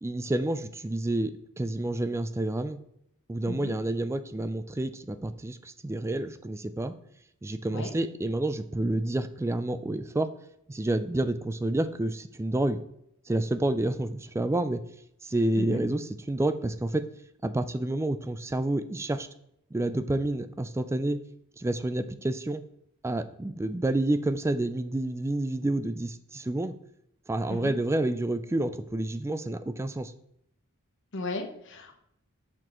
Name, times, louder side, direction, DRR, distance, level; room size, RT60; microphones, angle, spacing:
voice 1, 0.0-1.3 1.6-2.8 3.3-6.9 7.4-10.3 10.7-12.8 13.3-14.8 15.2-17.1 17.4-19.3 19.7-21.2 21.6-22.6 23.0-26.7 27.3-30.1, right 1 dB, 15° right, 12 dB, 0.3 m, -29 dB
voice 2, 31.1-32.0, left 2 dB, 60° left, 4 dB, 1.0 m, -35 dB
6.7 x 6.0 x 3.0 m, 0.75 s
head